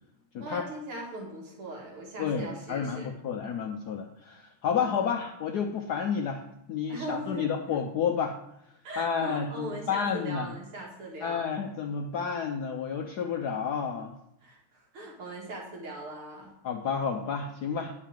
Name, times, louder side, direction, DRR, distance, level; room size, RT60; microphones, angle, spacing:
voice 1, 0.4-3.1 4.8-5.1 6.9-7.8 8.8-11.5 14.4-16.5, right 2 dB, 75° right, -2 dB, 2.6 m, -40 dB
voice 2, 2.2-6.4 6.7-8.4 9.0-10.5 11.2-14.1 16.6-17.9, left 6 dB, 70° left, 3 dB, 1.0 m, -30 dB
10.0 x 4.6 x 7.5 m, 0.82 s
omnidirectional pair, 2.4 m